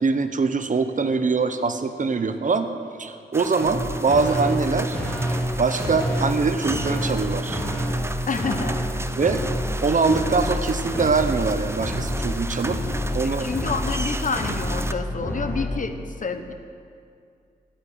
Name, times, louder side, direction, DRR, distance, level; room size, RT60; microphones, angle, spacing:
voice 1, 0.0-2.7 3.0-5.0 5.6-7.6 9.2-9.4 9.8-12.8 13.1-13.5, right 4 dB, 50° right, 9 dB, 0.8 m, -23 dB
sound 1, 3.3-14.9, right 2 dB, 15° right, 0.6 m, -35 dB
sound 2, 3.6-3.8 4.1-4.6 4.9-5.5 5.8-6.4 6.6-7.2 7.5-8.1 8.4-8.9 9.2-9.8 10.1-10.7 10.9-11.5 11.8-15.7, equal, 10° left, 3.4 m, -27 dB
voice 2, 8.3-8.8 13.2-16.5, left 4 dB, 50° left, 8 dB, 1.0 m, -28 dB
9.5 x 9.0 x 9.1 m, 2.3 s
cardioid pair, 75°, 17 cm